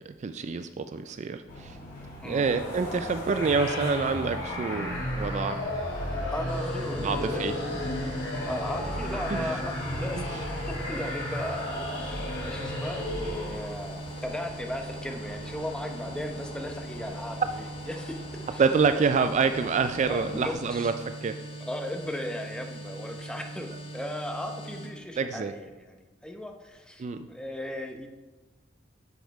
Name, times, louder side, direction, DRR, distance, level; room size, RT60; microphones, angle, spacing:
voice 1, 0.1-1.8 2.3-5.6 7.0-7.5 9.3-9.4 10.1-10.2 18.6-21.4 25.2-25.5 27.0-27.3, right 5 dB, 40° right, 10 dB, 0.3 m, -27 dB
sound 1, 1.5-20.5, left 1 dB, 55° left, 2.9 m, -43 dB
sound 2, 3.3-13.8, left 1 dB, 75° left, 2.9 m, -33 dB
voice 2, 6.3-7.8 8.5-10.3 10.7-18.6 20.0-20.9 21.6-28.1, left 1 dB, 5° left, 4 dB, 0.7 m, -37 dB
sound 3, 6.5-24.9, right 2 dB, 30° left, 1.8 m, -41 dB
8.0 x 6.4 x 4.7 m, 1.2 s
head